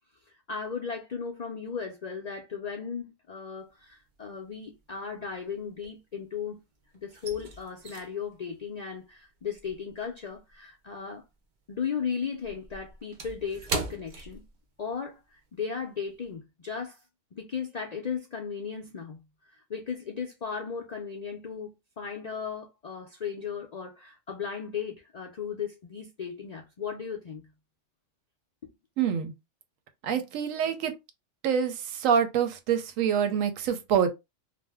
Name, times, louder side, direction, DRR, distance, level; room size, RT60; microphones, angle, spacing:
voice 1, 0.3-6.6 6.9-11.2 11.7-14.4 14.8-17.0 17.3-19.2 19.5-21.7 22.0-27.5, left 6 dB, 70° left, 0.4 m, -36 dB
sound 1, 3.7-4.2 4.5-6.5 6.8-11.5 11.7-15.0 15.4-15.5 16.0-16.3, right 3 dB, 60° right, 0.5 m, -40 dB
voice 2, 29.0-29.3 30.0-30.9 31.4-34.1, right 8 dB, 85° right, 1.0 m, -26 dB
2.6 x 2.1 x 3.4 m
omnidirectional pair, 1.4 m